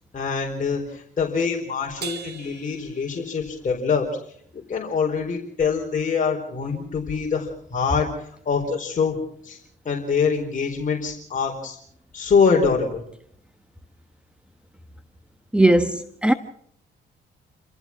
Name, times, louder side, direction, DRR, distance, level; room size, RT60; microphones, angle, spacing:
voice 1, 0.1-4.1 4.5-8.1 8.4-9.2 9.4-9.6 9.8-11.8 12.1-13.0, left 5 dB, 40° left, 4.4 m, -24 dB
Crash cymbal, 2.0-3.7, right 8 dB, 55° right, 3.0 m, -39 dB
voice 2, 15.5-16.3, right 1 dB, 5° right, 1.3 m, -18 dB
30.0 x 15.0 x 6.1 m
cardioid pair, 90°, 20 cm